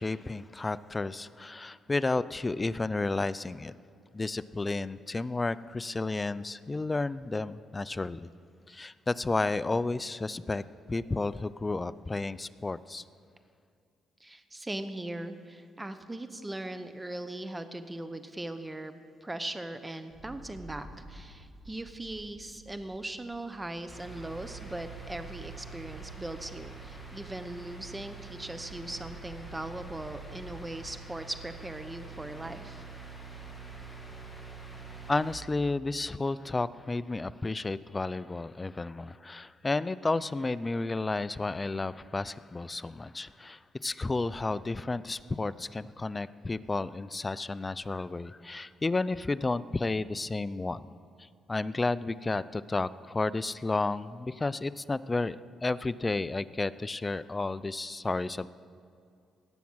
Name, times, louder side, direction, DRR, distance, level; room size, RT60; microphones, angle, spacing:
voice 1, 0.0-3.7 4.1-8.3 8.7-10.6 10.9-13.0 35.1-50.9 51.2-58.5, left 3 dB, 20° left, 17 dB, 0.4 m, -32 dB
voice 2, 14.2-18.9 19.2-32.8, right 1 dB, 15° right, 10 dB, 0.9 m, -39 dB
sound 1, 20.1-30.8, right 2 dB, 65° right, 2.3 m, -52 dB
sound 2, 23.9-35.3, right 4 dB, 5° left, 2.0 m, -46 dB
17.5 x 7.1 x 6.3 m, 2.4 s
cardioid pair, 90°, 0 cm